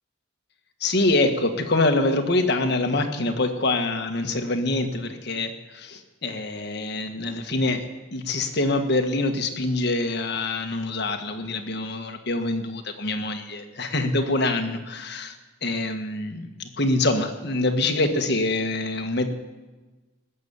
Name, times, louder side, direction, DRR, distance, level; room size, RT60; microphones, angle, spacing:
voice 1, 0.8-7.8 8.1-15.3 15.6-19.3, left 2 dB, 55° left, 5 dB, 1.6 m, -25 dB
20.0 x 7.0 x 8.8 m, 1.2 s
head